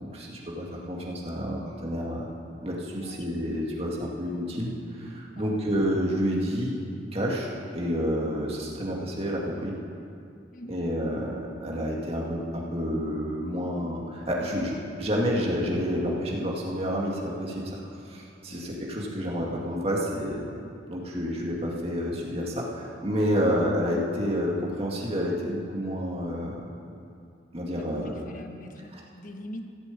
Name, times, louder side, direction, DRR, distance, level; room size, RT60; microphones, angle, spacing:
voice 1, 0.0-2.3 2.6-6.7 7.1-9.8 10.7-14.7 15.0-17.8 18.1-26.5 27.5-28.1 28.9-29.0, equal, 30° right, -3 dB, 2.2 m, -29 dB
voice 2, 27.7-29.6, left 1 dB, 45° left, 4 dB, 1.2 m, -43 dB
15.0 x 7.9 x 8.5 m, 2.5 s
head